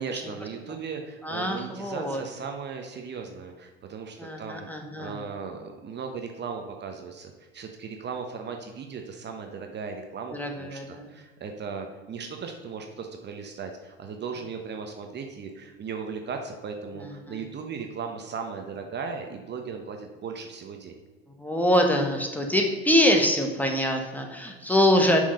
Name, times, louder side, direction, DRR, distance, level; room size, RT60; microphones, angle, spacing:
voice 1, 0.0-4.7 5.0-20.9, right 5 dB, 35° right, 4 dB, 1.0 m, -37 dB
voice 2, 1.2-2.2 4.2-5.2 10.3-11.1 17.0-17.4 21.4-25.2, left 1 dB, 5° left, 2 dB, 1.3 m, -24 dB
7.2 x 4.8 x 5.4 m, 1.3 s
hypercardioid pair, 70°, 31 cm